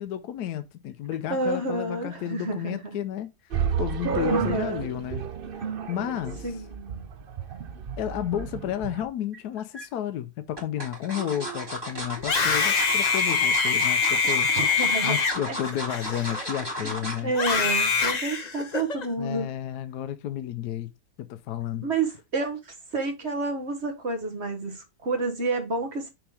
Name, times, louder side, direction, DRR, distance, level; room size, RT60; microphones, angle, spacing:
voice 1, 0.0-5.3 5.6-6.5 8.0-14.5 15.0-17.3 19.2-20.9 21.2-21.9, left 11 dB, 80° left, 1.2 m, -32 dB
voice 2, 1.3-2.9 4.2-4.9 6.4-7.1 11.2-11.7 14.5-15.2 15.5-15.6 16.8-17.0 17.2-19.5 21.8-26.1, right 3 dB, 45° right, 1.6 m, -30 dB
sound 1, 3.5-9.0, right 7 dB, 65° right, 0.5 m, -31 dB
sound 2, 9.3-9.9 10.6-17.3 17.7-17.9 18.2-18.3, equal, 15° right, 2.1 m, -35 dB
Screaming, 12.2-16.7 17.3-19.1, left 5 dB, 40° left, 0.6 m, -24 dB
6.1 x 3.7 x 4.8 m
omnidirectional pair, 1.7 m